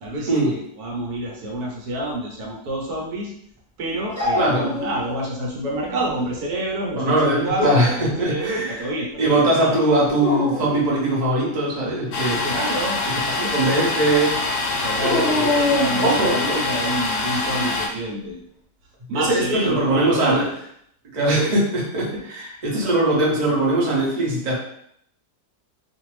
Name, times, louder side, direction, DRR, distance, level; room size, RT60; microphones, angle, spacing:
voice 1, 0.0-3.3 3.8-7.6 8.2-9.7 12.4-13.0 13.4-13.9 14.8-18.4 19.1-20.5 22.1-22.2, right 1 dB, 70° right, -2 dB, 1.2 m, -28 dB
Dog, 4.1-5.3 5.7-6.4 7.4-8.1 10.1-10.7 15.0-16.3, left 2 dB, 10° left, 1.1 m, -25 dB
voice 2, 4.3-4.7 7.0-8.8 9.2-12.4 13.5-14.4 15.0-15.6 16.0-16.6 19.1-20.5 21.1-24.6, right 1 dB, 45° right, -4 dB, 0.6 m, -21 dB
Domestic sounds home sounds, 12.1-17.9, left 3 dB, 70° left, 1.0 m, -25 dB
2.5 x 2.5 x 3.1 m, 0.70 s
omnidirectional pair, 1.8 m